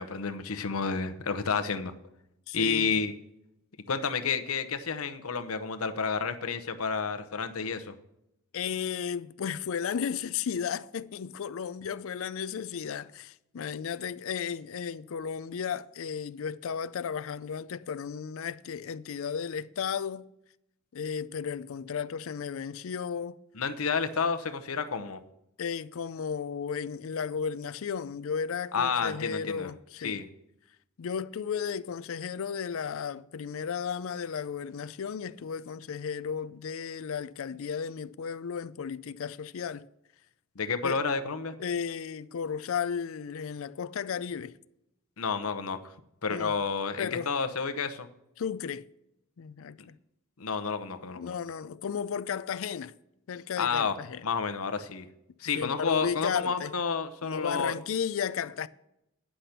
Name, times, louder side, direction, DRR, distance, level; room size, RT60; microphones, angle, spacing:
voice 1, 0.0-1.9 2.5-3.1 3.9-7.9 23.5-25.2 28.7-29.7 30.0-30.3 40.6-41.5 45.2-45.9 46.2-48.1 49.8-49.9 50.4-51.3 53.6-53.9 54.2-55.1 55.4-57.8, left 5 dB, 85° left, 0.9 m, -30 dB
voice 2, 2.5-3.0 8.5-20.3 20.9-23.4 25.6-30.2 31.0-39.8 40.8-41.0 41.6-44.5 46.3-46.5 47.0-47.3 48.4-48.9 49.4-50.0 51.2-52.9 53.3-54.2 55.6-56.7 57.2-58.7, left 7 dB, 70° left, 0.4 m, -34 dB
10.0 x 5.9 x 6.7 m
head